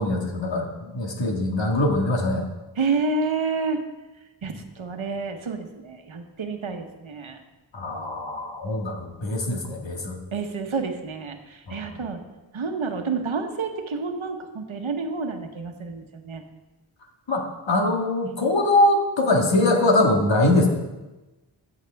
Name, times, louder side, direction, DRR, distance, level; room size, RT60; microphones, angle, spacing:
voice 1, 0.0-2.4 7.7-10.2 11.7-11.8 17.3-20.7, left 2 dB, 65° left, 1 dB, 1.8 m, -22 dB
voice 2, 2.8-3.8 4.4-7.4 10.3-11.4 11.7-12.2 12.5-16.4, right 4 dB, 75° right, 5 dB, 1.1 m, -29 dB
13.5 x 8.0 x 3.4 m, 1.1 s
wide cardioid pair, 65°, 48 cm